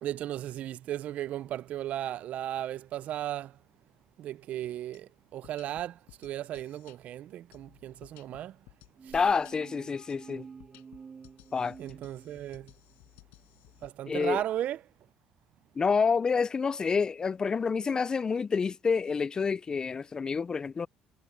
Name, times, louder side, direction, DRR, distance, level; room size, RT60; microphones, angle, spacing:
voice 1, 0.0-3.5 4.2-8.5 11.8-12.7 13.8-14.8, right 12 dB, 60° right, 0.5 m, -35 dB
sound 1, 4.9-5.0 5.4-7.0 7.5-9.6 10.1-10.2 10.6-13.9, left 22 dB, 85° left, 6.2 m, -57 dB
sound 2, 9.0-12.7, right 5 dB, 35° right, 2.1 m, -49 dB
voice 2, 9.1-10.5 11.5-11.8 14.1-14.4 15.8-20.9, left 5 dB, 25° left, 0.3 m, -28 dB
cardioid pair, 110°, 3 cm